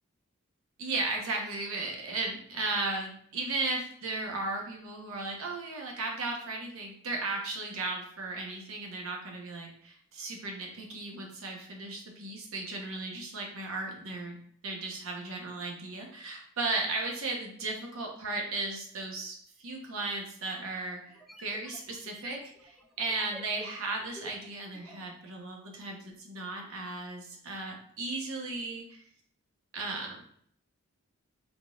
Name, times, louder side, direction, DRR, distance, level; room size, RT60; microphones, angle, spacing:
voice 1, 0.8-14.4 14.6-29.0 29.7-30.2, right 3 dB, 70° right, 0 dB, 1.0 m, -36 dB
sound 1, 19.7-19.8 21.1-25.1, left 1 dB, ahead, 0.3 m, -49 dB
3.8 x 3.8 x 2.4 m, 0.62 s
head